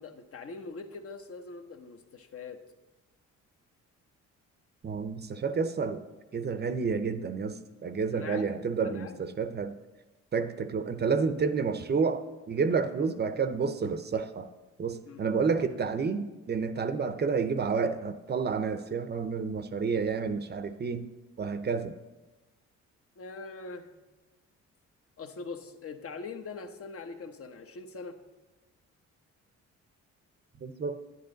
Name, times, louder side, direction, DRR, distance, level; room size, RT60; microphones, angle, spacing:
voice 1, 0.0-2.6 8.1-8.5 8.8-9.2 15.1-15.2 23.2-23.9 25.2-28.2, left 4 dB, 50° left, 6 dB, 1.1 m, -42 dB
voice 2, 4.8-6.0 6.3-9.8 10.3-14.5 14.8-21.1 21.4-22.0 30.6-31.0, right 5 dB, 35° right, 10 dB, 0.7 m, -30 dB
10.5 x 9.6 x 3.9 m, 1.1 s
cardioid pair, 90°, 30 cm